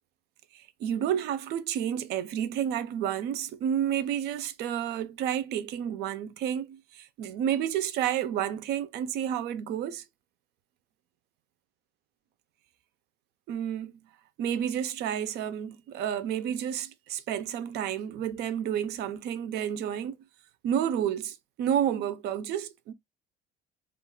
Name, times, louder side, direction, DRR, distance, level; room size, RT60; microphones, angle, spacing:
voice 1, 0.5-10.0 13.5-14.0 14.4-20.2 20.6-22.9, right 9 dB, 60° right, 0.5 m, -30 dB
2.4 x 2.4 x 3.6 m
cardioid pair, 145°, 19 cm